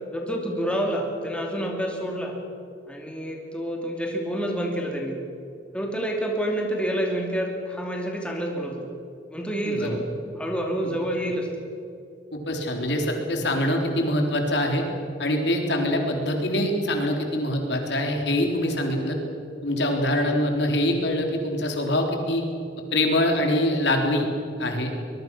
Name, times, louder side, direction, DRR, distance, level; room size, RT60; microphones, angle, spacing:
voice 1, 0.1-2.4 2.9-5.2 5.7-8.8 9.3-10.1 10.4-11.5 20.1-20.3, right 1 dB, 5° left, 0 dB, 2.6 m, -28 dB
voice 2, 9.7-10.0 12.3-14.8 15.2-19.2 19.6-22.4 22.9-24.3 24.6-24.9, left 1 dB, 65° left, 2 dB, 3.8 m, -24 dB
24.0 x 21.5 x 6.2 m, 2.6 s
head